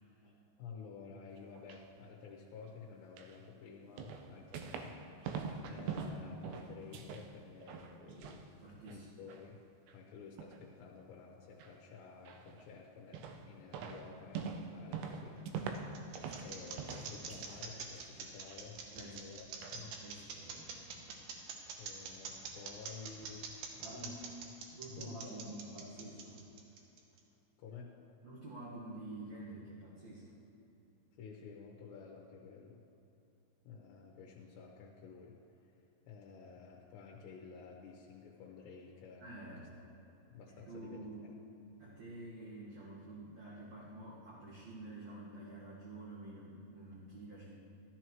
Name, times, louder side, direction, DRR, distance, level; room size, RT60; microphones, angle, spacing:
voice 1, 0.2-8.5 8.9-9.6 9.9-16.1 16.4-19.5 19.7-19.9 21.8-24.2 24.9-25.5 27.6-28.0 31.2-32.8 33.6-35.4 35.6-39.3 40.3-41.0, left 5 dB, 80° left, -2 dB, 3.1 m, -52 dB
sound 1, 1.4-1.8 3.2-3.4 4.0-5.0 5.2-7.3 7.6-8.4 8.8-9.5 9.9-10.0 10.4-10.6 11.6-11.7 12.3-12.7 13.1-13.5 13.7-16.5 16.8-17.7 18.0-18.6 19.0-19.1 19.6-19.8, right 6 dB, 85° right, 2.8 m, -43 dB
voice 2, 8.6-9.1 18.8-19.2 19.7-20.8 23.8-24.2 24.7-26.4 28.2-30.3 39.2-39.7 40.5-41.3 41.8-47.6, right 2 dB, 55° right, -8 dB, 2.2 m, -49 dB
sound 2, 15.4-27.2, right 6 dB, 70° right, 2.5 m, -45 dB
13.5 x 13.0 x 3.1 m, 2.9 s
omnidirectional pair, 5.0 m